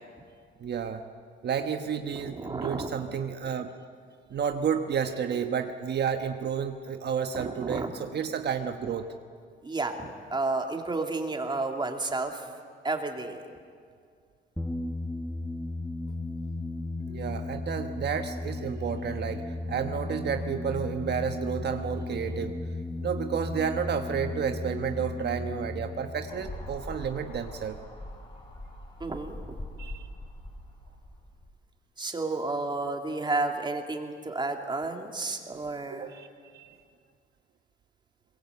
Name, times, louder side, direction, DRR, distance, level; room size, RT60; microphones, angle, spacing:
voice 1, 0.6-1.0 1.4-3.7 4.3-9.1 17.1-22.6 23.0-27.8 29.8-30.1 35.9-36.3 36.5-36.7, right 7 dB, 55° right, 6 dB, 1.2 m, -31 dB
voice 2, 2.1-3.0 7.3-7.9 9.6-12.5 12.8-13.4 29.0-29.6 32.0-36.1, right 3 dB, 25° right, 3 dB, 2.6 m, -31 dB
sound 1, 14.6-27.8, left 2 dB, 5° left, 1.5 m, -35 dB
sound 2, 26.3-31.5, left 1 dB, 25° left, 7.9 m, -42 dB
23.0 x 21.5 x 8.2 m, 2.2 s
cardioid pair, 90°, 20 cm